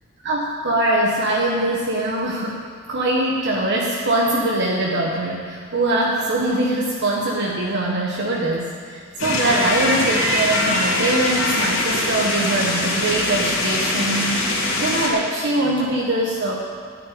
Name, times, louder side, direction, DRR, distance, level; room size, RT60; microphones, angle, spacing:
voice 1, 0.2-2.6 2.9-14.4 14.8-16.5, right 1 dB, 55° right, -3 dB, 1.4 m, -22 dB
sound 1, 9.2-15.1, left 2 dB, 85° left, 3.0 m, -22 dB
13.0 x 6.6 x 9.5 m, 2.2 s
head